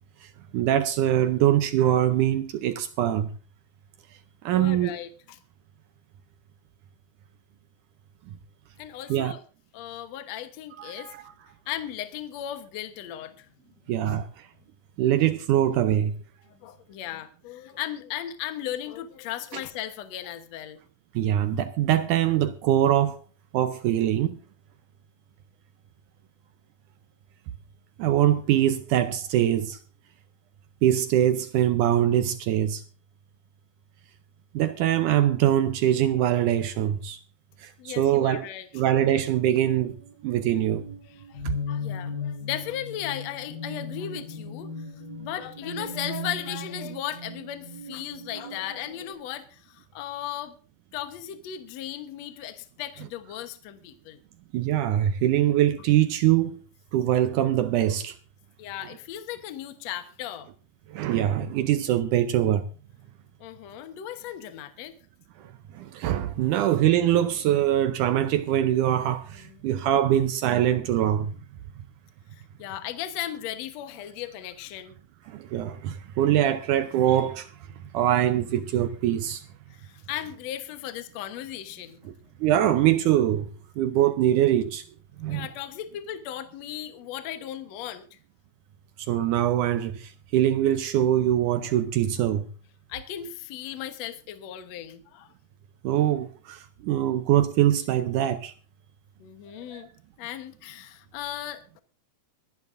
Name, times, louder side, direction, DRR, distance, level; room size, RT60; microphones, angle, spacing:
voice 1, 0.5-3.3 4.5-4.9 9.1-9.3 10.8-11.2 13.9-14.3 15.0-16.1 21.2-23.2 23.5-24.4 28.0-29.8 30.8-32.8 34.5-37.2 37.6-38.5 38.7-40.0 40.2-40.9 41.5-41.6 54.5-56.6 56.9-58.1 60.9-62.7 65.7-71.3 75.3-77.5 77.9-79.4 82.4-83.5 83.8-84.8 85.2-85.5 89.1-92.5 95.8-98.5 99.7-99.9, right 11 dB, 75° right, 2.0 m, -23 dB
voice 2, 4.5-5.4 8.8-9.4 9.7-11.1 11.7-13.5 14.0-14.2 16.5-20.8 37.8-38.7 41.2-41.4 41.7-44.7 45.2-50.6 50.9-54.2 58.6-60.5 63.4-64.9 66.6-66.7 69.3-69.6 72.6-74.9 79.7-82.0 85.3-88.2 92.9-95.3 99.2-99.9 100.2-101.8, left 11 dB, 60° left, 2.0 m, -36 dB
sound 1, 39.6-49.1, left 3 dB, 80° left, 6.1 m, -37 dB
24.5 x 10.5 x 2.6 m
omnidirectional pair, 4.1 m